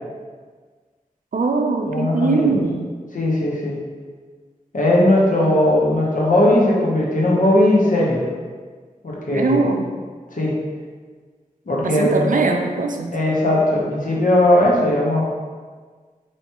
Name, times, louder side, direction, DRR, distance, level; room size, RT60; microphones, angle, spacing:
voice 1, 1.3-3.0 9.3-9.9 11.8-13.2, right 3 dB, 65° right, 3 dB, 0.4 m, -21 dB
voice 2, 1.9-2.5 3.1-3.8 4.7-8.3 9.0-9.6 10.3-10.5 11.7-12.3 13.1-15.2, left 1 dB, 65° left, -4 dB, 0.9 m, -18 dB
4.3 x 3.1 x 2.9 m, 1.5 s
wide cardioid pair, 50°, 15 cm